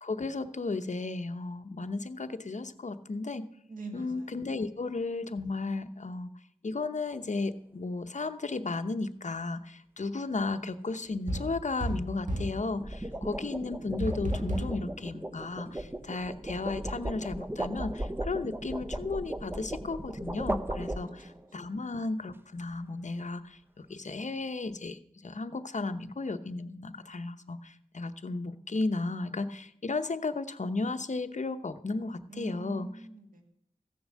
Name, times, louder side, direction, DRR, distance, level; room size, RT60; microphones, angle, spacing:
voice 1, 0.0-3.4 3.9-6.3 6.6-32.9, left 3 dB, 60° left, 9 dB, 0.8 m, -34 dB
voice 2, 3.7-4.4 13.1-13.3 20.8-20.9 21.6-21.7 32.3-33.4, right 3 dB, 85° right, 4 dB, 2.1 m, -44 dB
sound 1, 7.1-7.4 12.6-21.5, right 1 dB, 15° right, 0.7 m, -37 dB
sound 2, 11.3-12.6 14.0-14.8, equal, 65° right, 2.0 m, -32 dB
15.0 x 7.0 x 6.3 m, 0.71 s
wide cardioid pair, 55°, 14 cm